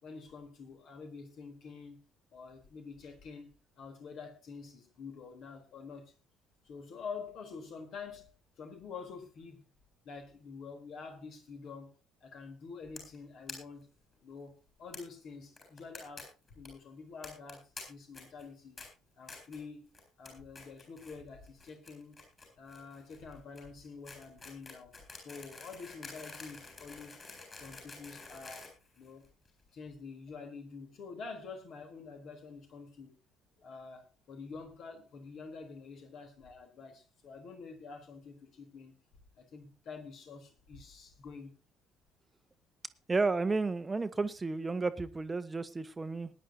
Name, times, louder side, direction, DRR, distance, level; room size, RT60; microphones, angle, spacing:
voice 1, 0.0-2.0 2.3-6.1 6.6-9.7 10.0-12.0 12.2-13.9 14.2-18.8 19.2-22.2 22.6-27.2 27.5-28.7 28.9-29.2 29.7-33.1 33.6-38.9 39.4-41.5, left 5 dB, 50° left, 3.7 m, -47 dB
sound 1, 13.0-13.2 13.5-13.6 13.8-13.9 14.1-14.2 14.9-15.0 15.6-16.2 16.5-16.7 17.2-17.8 18.1-18.4 18.8-18.9 19.3-19.6 19.9-20.3 20.5-21.2 21.4-29.5, left 3 dB, 30° left, 7.7 m, -48 dB
voice 2, 43.1-46.3, right 3 dB, 20° right, 1.2 m, -32 dB
20.0 x 11.0 x 2.8 m
figure-of-eight pair, 50°, 0 cm